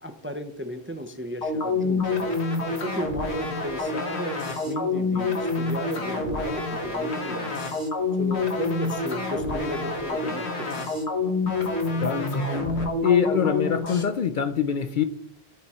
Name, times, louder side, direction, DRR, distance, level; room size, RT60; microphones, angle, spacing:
voice 1, 0.0-2.3 2.8-7.7 8.2-10.9, equal, 15° right, 0.5 m, -35 dB
sound 1, 1.4-14.0, left 3 dB, 80° left, 1.6 m, -27 dB
voice 2, 12.0-12.5 13.0-15.0, left 7 dB, 60° left, 0.6 m, -24 dB
11.5 x 4.7 x 4.2 m
omnidirectional pair, 1.1 m